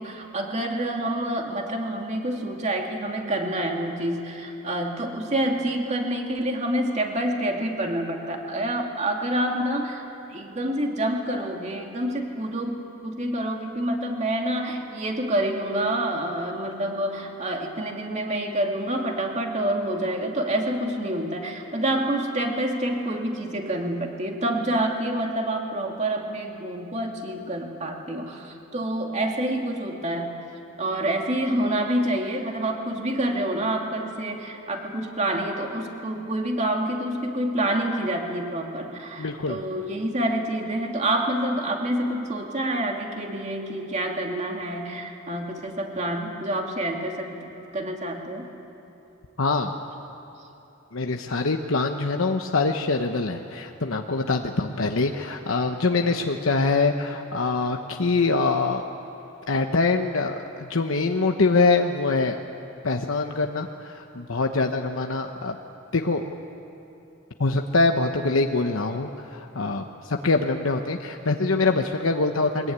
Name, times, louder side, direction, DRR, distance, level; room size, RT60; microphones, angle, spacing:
voice 1, 0.0-10.0 10.3-30.3 30.8-48.5, right 1 dB, 35° right, 1 dB, 2.6 m, -27 dB
voice 2, 39.2-39.6 49.4-49.7 50.9-58.9 59.5-62.4 62.8-65.6 65.9-66.3 67.4-72.7, left 3 dB, 75° left, 4 dB, 1.0 m, -24 dB
22.5 x 21.0 x 9.7 m, 2.9 s
head